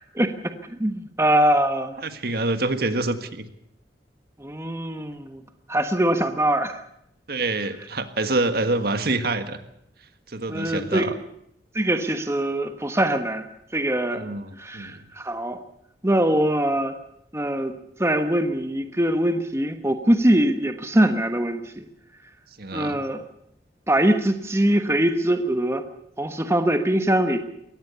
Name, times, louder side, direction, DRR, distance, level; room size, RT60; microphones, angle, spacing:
voice 1, 0.1-2.0 4.4-5.4 5.7-6.8 10.5-11.1 11.7-13.4 13.7-14.2 14.6-15.6 16.0-17.0 17.3-21.8 22.7-23.2 23.9-25.8 26.2-27.4, right 1 dB, 15° right, 8 dB, 1.3 m, -22 dB
voice 2, 2.0-3.5 7.3-9.7 10.3-11.1 14.1-15.0 22.6-23.0, right 2 dB, 60° right, 9 dB, 1.7 m, -26 dB
22.5 x 18.5 x 7.0 m, 0.76 s
head